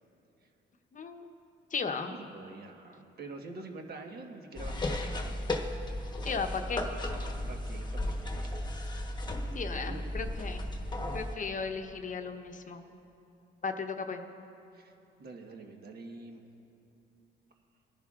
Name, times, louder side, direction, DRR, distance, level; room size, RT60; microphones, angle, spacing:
voice 1, 0.9-1.3 1.7-2.1 6.2-6.9 9.5-10.6 11.1-12.8 13.6-14.2, left 5 dB, 40° left, 6 dB, 0.8 m, -36 dB
voice 2, 2.1-5.3 7.5-8.6 9.4-10.3 14.7-14.9 15.2-16.4, right 3 dB, 50° right, 3 dB, 1.4 m, -46 dB
sound 1, 4.5-11.3, left 1 dB, 20° left, 1.1 m, -35 dB
21.0 x 10.5 x 2.5 m, 2.8 s
cardioid pair, 90°, 20 cm